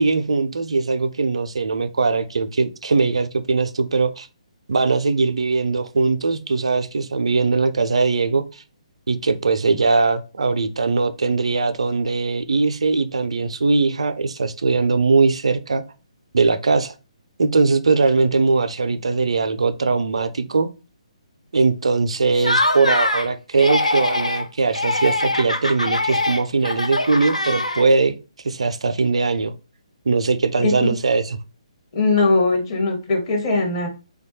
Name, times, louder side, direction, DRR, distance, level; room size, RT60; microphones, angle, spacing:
voice 1, 0.0-4.3 4.7-8.6 9.1-15.8 16.3-16.9 17.4-20.7 21.5-28.1 28.4-29.5 30.1-31.4, right 4 dB, 60° right, 0.4 m, -20 dB
Laughter, 22.3-23.3 23.6-24.4 24.7-28.1, left 2 dB, 85° left, 0.4 m, -22 dB
voice 2, 30.6-30.9 31.9-33.9, left 3 dB, 40° left, 0.8 m, -20 dB
3.1 x 2.2 x 2.8 m
figure-of-eight pair, 135°, 4 cm